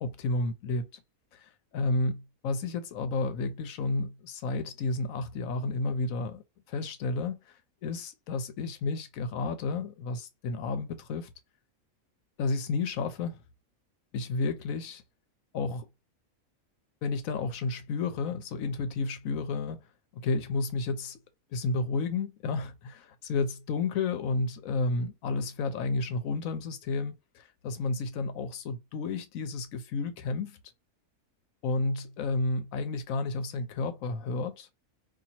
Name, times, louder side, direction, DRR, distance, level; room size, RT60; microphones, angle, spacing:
voice 1, 0.0-0.9 1.3-6.4 6.7-7.5 7.8-11.3 12.4-13.4 14.1-15.0 15.5-15.9 17.0-19.8 20.1-21.2 21.5-30.6 31.6-34.7, left 3 dB, 75° left, 1.1 m, -31 dB
2.9 x 2.7 x 4.1 m
omnidirectional pair, 1.5 m